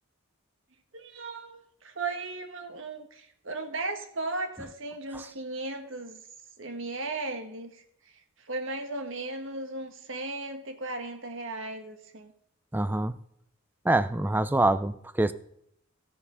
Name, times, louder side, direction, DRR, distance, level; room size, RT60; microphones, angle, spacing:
voice 1, 0.9-6.2 6.6-7.7 8.5-12.3, right 2 dB, 55° right, 6 dB, 1.5 m, -36 dB
voice 2, 12.7-13.1 13.9-15.3, right 2 dB, 10° right, 14 dB, 0.4 m, -25 dB
16.0 x 7.0 x 5.6 m, 0.73 s
head